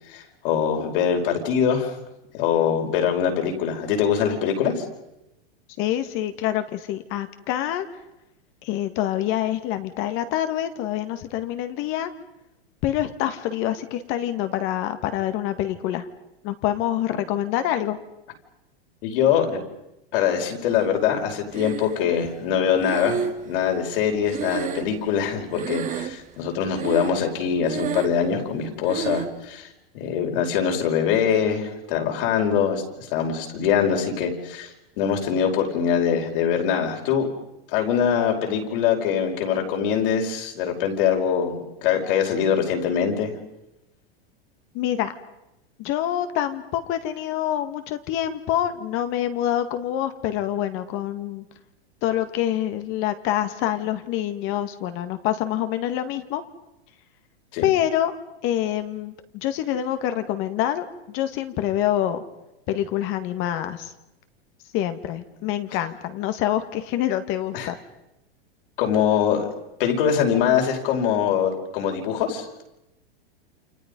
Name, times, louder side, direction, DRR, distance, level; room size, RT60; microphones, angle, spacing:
voice 1, 0.1-1.9 2.3-4.8 19.0-19.6 20.1-29.7 29.9-32.8 33.1-37.3 37.7-43.4 57.5-57.7 67.5-67.7 68.8-69.5 69.8-72.5, left 8 dB, 60° left, 2 dB, 5.5 m, -23 dB
voice 2, 5.8-7.9 8.6-12.1 12.8-16.1 16.4-18.0 44.7-45.1 45.8-51.5 52.0-56.4 57.6-58.1 58.4-62.2 62.7-63.9 64.7-67.8, left 12 dB, 40° left, 9 dB, 1.9 m, -26 dB
Breathing, 21.5-22.2 22.8-25.3 25.5-26.4 26.7-27.3 27.6-28.3 28.9-29.4, right 8 dB, 25° right, 1.4 m, -31 dB
29.5 x 26.5 x 5.4 m, 0.89 s
supercardioid pair, 140°, 31 cm